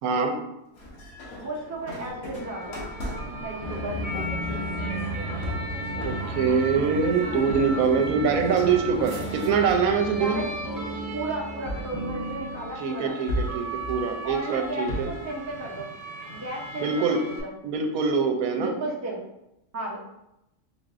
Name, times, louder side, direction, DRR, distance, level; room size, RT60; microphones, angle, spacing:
voice 1, 0.0-0.3 6.0-10.4 12.8-15.1 16.8-17.2 17.6-18.7, right 5 dB, 85° right, 4 dB, 1.1 m, -24 dB
sound 1, 0.7-9.9 10.3-10.9 11.7-12.7 13.3-15.3, equal, 90° left, 1.4 m, -37 dB
voice 2, 1.4-2.8 3.4-4.0 10.1-10.5 11.1-13.3 14.2-15.9 16.3-17.5 18.6-19.2 19.7-20.0, right 2 dB, 25° right, -2 dB, 0.4 m, -34 dB
sound 2, 2.3-17.4, right 1 dB, 45° right, 0.8 m, -37 dB
sound 3, 3.6-12.8, right 1 dB, 50° left, 0.4 m, -34 dB
3.8 x 3.4 x 2.5 m, 0.86 s
omnidirectional pair, 1.5 m